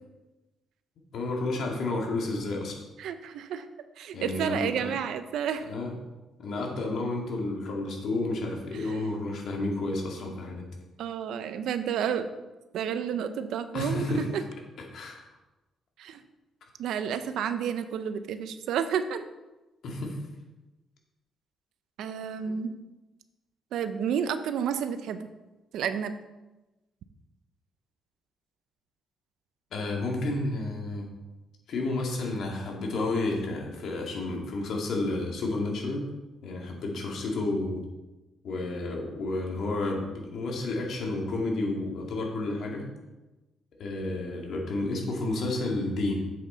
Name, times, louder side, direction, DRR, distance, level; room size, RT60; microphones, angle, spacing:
voice 1, 1.1-2.8 4.1-4.9 5.6-5.9 6.4-10.6 13.7-14.4 14.9-15.2 19.8-20.2 29.7-31.1 31.7-36.1 36.4-37.8 38.4-42.9 43.8-46.3, left 2 dB, 65° left, 0 dB, 2.1 m, -31 dB
voice 2, 3.0-3.7 4.0-5.7 8.7-9.0 11.0-12.3 12.7-14.4 16.0-16.2 16.8-19.3 22.0-22.8 23.7-25.2 25.7-26.1, right 8 dB, 80° right, 11 dB, 0.5 m, -31 dB
7.7 x 6.4 x 3.9 m, 1.1 s
cardioid pair, 90°, 0 cm